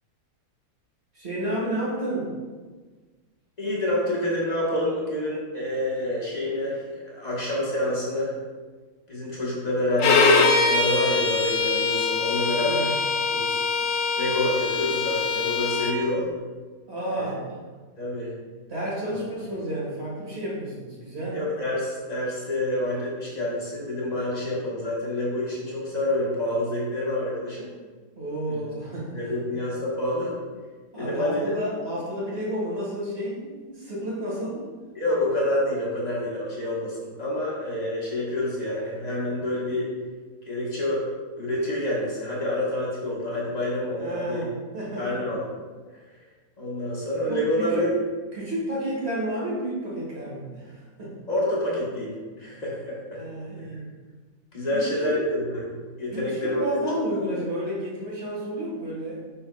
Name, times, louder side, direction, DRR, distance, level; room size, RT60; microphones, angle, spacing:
voice 1, 1.1-2.3 12.6-13.0 16.9-17.5 18.7-21.4 28.1-29.4 30.9-34.7 44.0-45.2 47.3-47.9 48.3-51.2 52.4-52.5 53.1-53.9 54.7-55.2 56.1-59.2, right 1 dB, 45° right, -6 dB, 1.7 m, -31 dB
voice 2, 3.6-8.3 9.1-12.9 13.3-13.6 14.2-16.3 17.1-17.3 18.0-18.3 21.3-27.7 28.5-28.6 29.1-30.4 31.0-31.5 34.9-39.9 40.5-41.1 41.3-44.4 45.0-45.6 46.6-47.9 51.3-53.2 54.5-56.6, left 1 dB, 30° left, -6 dB, 1.1 m, -28 dB
Bowed string instrument, 10.0-16.0, left 4 dB, 85° left, 1.1 m, -23 dB
5.6 x 4.3 x 2.2 m, 1.4 s
omnidirectional pair, 1.6 m